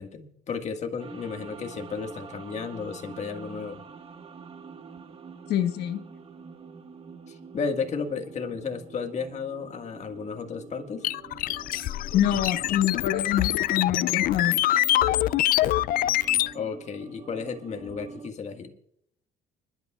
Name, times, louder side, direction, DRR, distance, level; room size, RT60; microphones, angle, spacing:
voice 1, 0.0-3.8 7.3-11.1 16.5-18.7, left 5 dB, 45° left, 5 dB, 1.7 m, -33 dB
sound 1, 1.0-18.3, right 5 dB, 35° right, 1.6 m, -46 dB
voice 2, 5.5-6.0 12.1-14.6, left 11 dB, 80° left, 8 dB, 1.3 m, -26 dB
sound 2, 11.0-16.5, left 14 dB, 60° left, 0.4 m, -25 dB
29.0 x 11.5 x 2.4 m, 0.72 s
cardioid pair, 110°, 17 cm